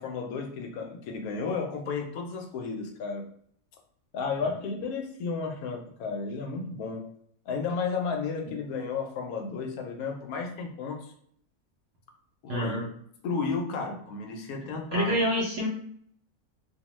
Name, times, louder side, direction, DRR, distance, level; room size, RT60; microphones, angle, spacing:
voice 1, 0.0-3.2 4.1-7.0 7.5-11.1 12.4-12.8 13.2-15.2, left 4 dB, 80° left, 3 dB, 1.0 m, -33 dB
voice 2, 12.5-12.9 14.6-15.7, equal, 60° right, -3 dB, 0.7 m, -28 dB
2.6 x 2.1 x 3.0 m, 0.64 s
omnidirectional pair, 1.5 m